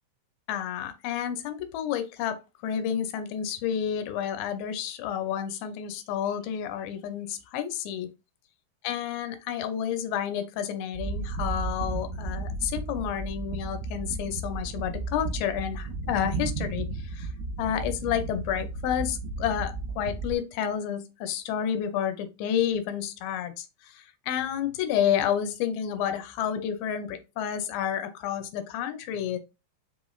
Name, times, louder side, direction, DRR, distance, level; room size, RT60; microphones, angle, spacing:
voice 1, 0.5-8.1 8.8-16.9 17.1-17.3 17.6-23.7 23.9-29.4, left 9 dB, 85° left, 2.5 m, -30 dB
sound 1, 10.9-20.4, right 3 dB, 90° right, 2.5 m, -34 dB
5.8 x 3.1 x 2.3 m
omnidirectional pair, 4.2 m